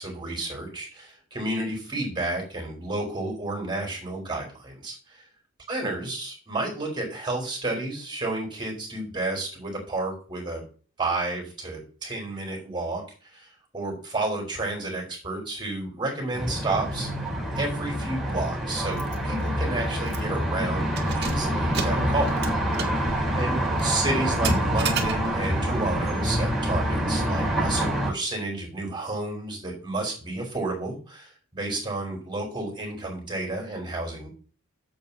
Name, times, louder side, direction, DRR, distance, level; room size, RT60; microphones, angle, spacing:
voice 1, 0.0-5.2 5.7-10.6 11.0-17.1 17.6-22.8 23.3-34.3, right 2 dB, 25° right, 0 dB, 4.6 m, -31 dB
sound 1, 16.3-28.1, equal, ahead, 3.9 m, -26 dB
Keys jangling, 19.0-19.2 19.5-19.6 20.1-20.4 20.8-25.6, right 5 dB, 55° right, 1.6 m, -34 dB
13.5 x 7.9 x 2.8 m, 0.39 s
head